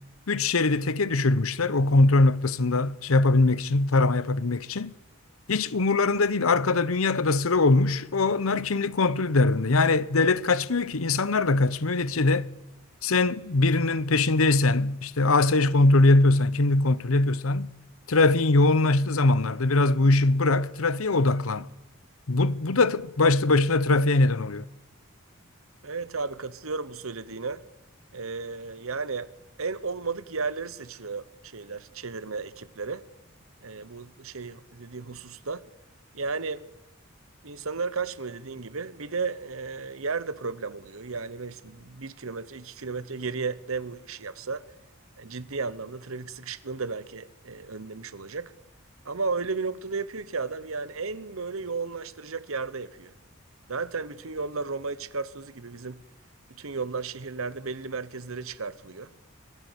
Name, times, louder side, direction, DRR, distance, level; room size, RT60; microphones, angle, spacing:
voice 1, 0.3-4.9 5.5-12.5 13.0-17.7 18.1-21.7 22.3-24.6, left 2 dB, 75° left, 0.9 m, -22 dB
voice 2, 25.8-27.6 28.1-29.3 29.6-33.0 33.6-35.7 36.1-36.6 37.4-44.6 45.2-48.5 49.0-53.1 53.7-56.0 56.5-59.1, right 4 dB, 70° right, 1.1 m, -34 dB
25.5 x 18.5 x 8.2 m
head